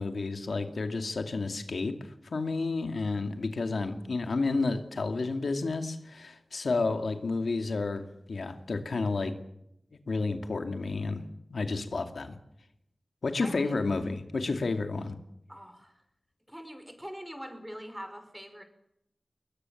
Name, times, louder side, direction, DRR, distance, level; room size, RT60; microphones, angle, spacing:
voice 1, 0.0-9.3 10.1-11.2 11.5-12.4 13.2-15.2, left 3 dB, 90° left, 7 dB, 2.4 m, -31 dB
voice 2, 13.4-13.8 15.5-16.0 16.5-18.6, equal, 10° right, 8 dB, 5.4 m, -43 dB
22.0 x 21.5 x 7.3 m, 0.78 s
wide cardioid pair, 50°, 0 cm